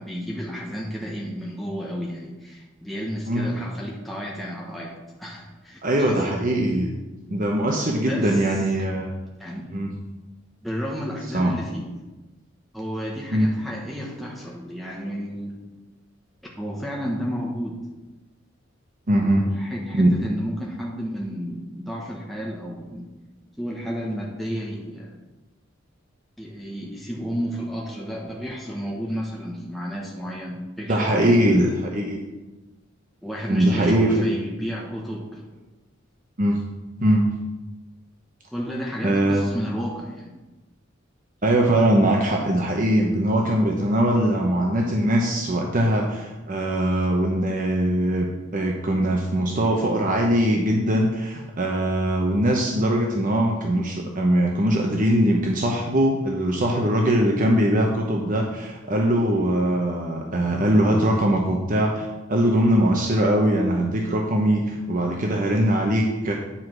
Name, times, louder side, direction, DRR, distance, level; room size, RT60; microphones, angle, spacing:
voice 1, 0.0-6.4 8.0-8.6 9.0-9.1 9.4-9.7 10.6-11.9 12.7-15.6 16.4-17.7 19.2-23.0 23.6-25.1 26.4-31.6 33.2-35.4 38.5-40.3, equal, ahead, -4 dB, 1.2 m, -32 dB
voice 2, 5.8-6.9 7.3-9.1 9.7-9.9 11.3-11.5 13.3-13.5 19.1-19.5 19.9-20.1 30.9-32.2 33.5-34.3 36.4-36.6 37.0-37.2 39.0-39.5 41.4-48.3 48.5-66.3, right 1 dB, 45° right, 0 dB, 0.9 m, -21 dB
10.0 x 4.9 x 6.1 m, 1.1 s
head